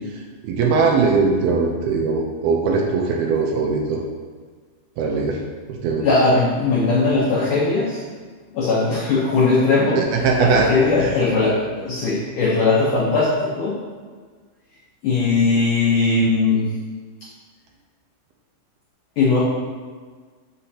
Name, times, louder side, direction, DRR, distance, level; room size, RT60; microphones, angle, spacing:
voice 1, 0.0-4.0 5.0-5.4 5.7-6.1 10.0-10.7 11.0-11.1, right 4 dB, 80° right, 0 dB, 2.5 m, -20 dB
voice 2, 6.0-8.0 8.5-13.8 15.0-16.8 19.2-19.4, left 3 dB, 75° left, -6 dB, 1.8 m, -19 dB
7.5 x 6.5 x 2.8 m, 1.5 s
omnidirectional pair, 4.7 m